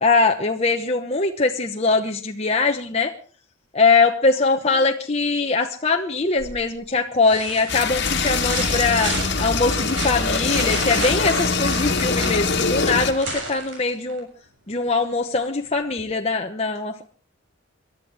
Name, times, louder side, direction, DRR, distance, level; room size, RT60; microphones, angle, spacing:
voice 1, 0.0-3.1 3.7-14.3 14.7-17.0, left 3 dB, 30° left, 3 dB, 1.0 m, -22 dB
sound 1, 6.4-6.8 7.2-14.2 16.0-16.1, right 2 dB, 60° right, 7.1 m, -32 dB
sound 2, 7.7-13.1, left 4 dB, 55° left, 1.7 m, -23 dB
22.0 x 12.0 x 4.8 m, 0.42 s
head